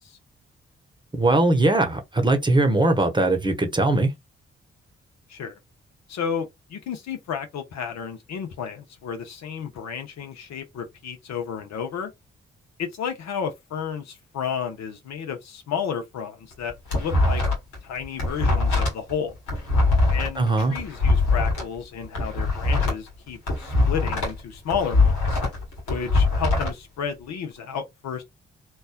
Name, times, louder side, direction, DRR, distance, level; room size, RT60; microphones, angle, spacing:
voice 1, 1.1-4.1 20.4-20.7, right 2 dB, 15° right, 0.9 m, -20 dB
voice 2, 6.1-12.1 12.8-17.4 17.8-19.3 20.1-25.4 25.9-28.2, left 7 dB, 65° left, 0.7 m, -32 dB
sound 1, 16.5-17.8 18.0-21.6 22.0-24.4 24.7-26.7, left 3 dB, 85° left, 1.3 m, -22 dB
3.1 x 2.2 x 2.2 m
hypercardioid pair, 40°, 29 cm